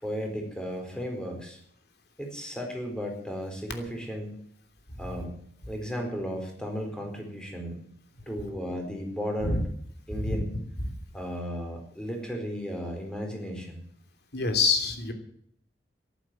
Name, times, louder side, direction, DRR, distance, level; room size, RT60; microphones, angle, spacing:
voice 1, 0.0-1.6 2.2-4.4 5.0-5.3 5.7-7.8 8.3-9.6 10.1-10.6 11.1-13.8, equal, 5° left, 2 dB, 4.4 m, -34 dB
voice 2, 14.3-15.1, left 4 dB, 65° left, 6 dB, 3.0 m, -26 dB
14.0 x 11.5 x 7.7 m, 0.65 s
head